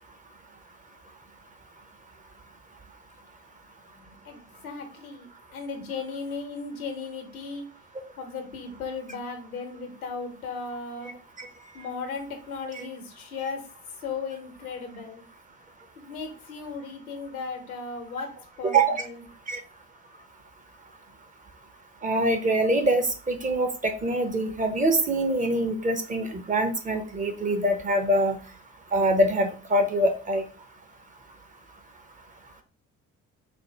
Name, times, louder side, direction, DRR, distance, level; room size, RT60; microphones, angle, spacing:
voice 1, 4.2-7.6 8.2-11.1 11.7-13.6 14.0-15.2 16.0-18.3 18.6-19.2, left 4 dB, 85° left, 5 dB, 0.8 m, -36 dB
voice 2, 18.6-19.0 19.5-19.6 22.0-28.4 28.9-30.5, right 1 dB, 20° right, 6 dB, 0.6 m, -24 dB
4.1 x 2.1 x 3.1 m, 0.37 s
figure-of-eight pair, 50°, 42 cm